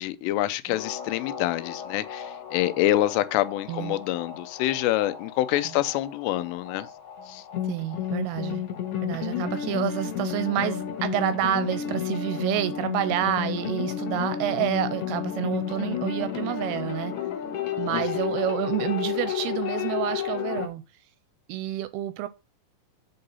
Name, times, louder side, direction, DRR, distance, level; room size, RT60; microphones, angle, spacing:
voice 1, 0.0-6.9 7.3-7.4 17.8-18.3, left 14 dB, 90° left, 2.8 m, -26 dB
sound 1, 0.7-20.7, left 9 dB, 75° left, 1.3 m, -32 dB
voice 2, 7.6-8.6 9.0-17.1 17.8-20.8 21.5-22.3, right 14 dB, 80° right, 2.3 m, -28 dB
8.2 x 3.8 x 5.4 m
omnidirectional pair, 4.8 m